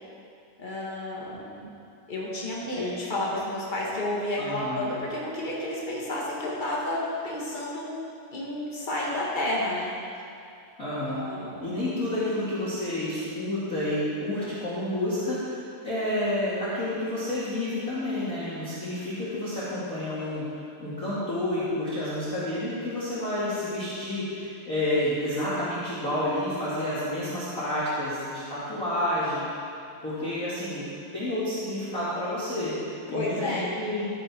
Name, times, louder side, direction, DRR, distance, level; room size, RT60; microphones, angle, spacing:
voice 1, 0.6-1.7 2.1-7.9 8.3-9.9 11.2-11.7 33.1-33.7, left 1 dB, 45° left, -5 dB, 0.6 m, -31 dB
voice 2, 4.4-4.9 10.8-11.3 11.6-15.6 15.8-29.6 30.0-30.9 31.1-34.1, left 1 dB, 25° left, -12 dB, 2.2 m, -30 dB
14.5 x 8.0 x 4.5 m, 2.4 s
omnidirectional pair, 4.1 m